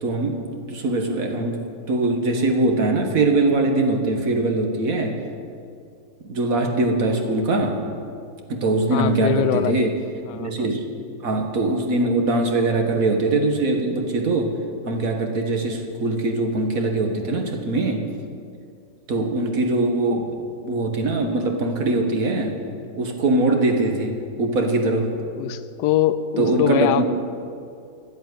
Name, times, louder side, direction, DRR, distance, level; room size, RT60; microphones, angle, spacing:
voice 1, 0.0-5.2 6.2-7.8 8.5-9.9 10.3-10.8 11.2-14.5 14.8-18.1 19.1-20.3 20.6-22.5 23.0-25.1 26.4-27.2, right 2 dB, 50° right, 3 dB, 1.6 m, -22 dB
voice 2, 8.9-9.9 10.3-10.7 25.4-27.0, left 11 dB, 75° left, 13 dB, 1.2 m, -23 dB
12.0 x 8.0 x 9.3 m, 2.4 s
omnidirectional pair, 2.0 m